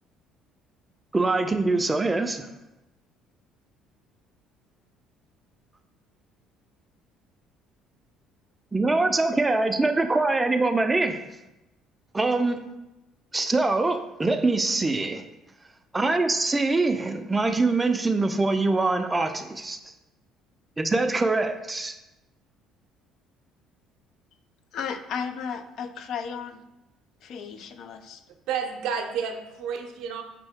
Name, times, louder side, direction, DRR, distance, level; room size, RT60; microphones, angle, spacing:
voice 1, 1.1-2.5 8.7-11.2 12.1-12.6 13.3-15.2 15.9-19.8 20.8-22.0, right 3 dB, 15° right, 7 dB, 0.4 m, -24 dB
voice 2, 24.7-26.6 27.2-28.2, left 6 dB, 60° left, 8 dB, 0.4 m, -34 dB
voice 3, 28.5-30.2, right 6 dB, 75° right, 4 dB, 0.6 m, -30 dB
5.1 x 2.7 x 3.5 m, 0.96 s
supercardioid pair, 95°, 0 cm